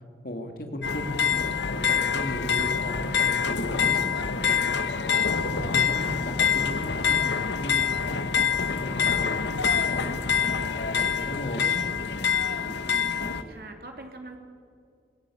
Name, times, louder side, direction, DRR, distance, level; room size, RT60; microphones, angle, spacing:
voice 1, 0.2-4.8 5.4-9.4 9.8-11.8, left 1 dB, 55° left, 4 dB, 2.6 m, -37 dB
sound 1, 0.8-13.4, left 6 dB, 85° left, 1.3 m, -26 dB
voice 2, 12.6-14.4, right 2 dB, 55° right, 4 dB, 3.0 m, -43 dB
26.5 x 16.0 x 8.7 m, 2.2 s
head